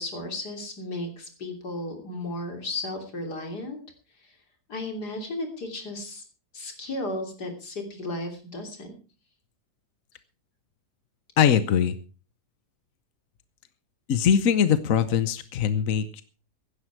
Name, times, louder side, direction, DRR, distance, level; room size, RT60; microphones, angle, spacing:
voice 1, 0.0-3.8 4.7-6.2 6.5-9.0, left 2 dB, 80° left, 4 dB, 3.7 m, -34 dB
voice 2, 11.4-12.0 14.1-16.2, left 8 dB, 60° left, 12 dB, 1.2 m, -22 dB
16.0 x 12.0 x 4.7 m, 0.36 s
omnidirectional pair, 1.7 m